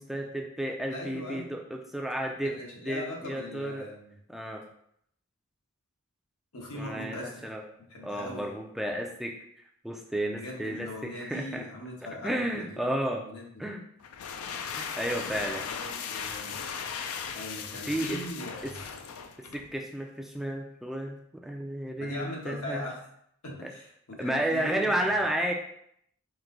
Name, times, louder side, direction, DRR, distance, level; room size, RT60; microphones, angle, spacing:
voice 1, 0.0-2.6 2.8-3.9 4.3-4.6 6.7-7.6 8.0-9.3 9.8-11.6 12.0-13.2 13.6-13.8 14.7-15.7 17.8-18.3 18.6-18.7 19.5-22.8 23.6-23.7 24.2-25.5, right 1 dB, ahead, 1 dB, 0.3 m, -32 dB
voice 2, 0.9-1.5 2.4-4.1 6.5-7.4 7.9-8.4 10.3-12.9 13.2-13.4 15.7-16.5 17.3-18.8 22.0-23.0 23.4-24.9, left 1 dB, 85° left, -3 dB, 1.3 m, -40 dB
sound 1, 14.0-19.7, left 6 dB, 70° left, 0.4 m, -37 dB
4.7 x 2.6 x 3.8 m, 0.71 s
head